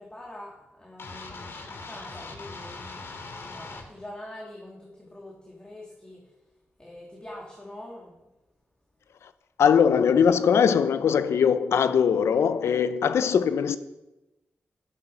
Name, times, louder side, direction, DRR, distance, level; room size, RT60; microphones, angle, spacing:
voice 1, 0.0-6.3 6.8-8.3, left 1 dB, 20° left, 3.2 m, -44 dB
sound 1, 1.0-3.9, left 3 dB, 65° left, 2.3 m, -40 dB
voice 2, 9.6-13.8, left 7 dB, 80° left, 0.8 m, -21 dB
12.0 x 11.5 x 5.1 m
cardioid pair, 45°, 4 cm